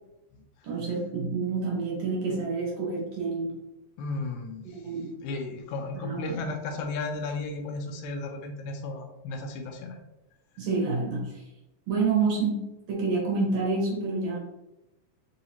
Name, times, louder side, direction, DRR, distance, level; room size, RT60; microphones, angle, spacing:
voice 1, 0.6-3.5 4.7-5.1 6.0-6.4 10.6-11.3 11.9-12.6 12.9-14.4, right 4 dB, 65° right, -3 dB, 1.9 m, -28 dB
voice 2, 4.0-4.8 5.2-10.0, left 3 dB, 80° left, 4 dB, 1.9 m, -34 dB
4.9 x 2.9 x 2.7 m, 0.94 s
omnidirectional pair, 3.5 m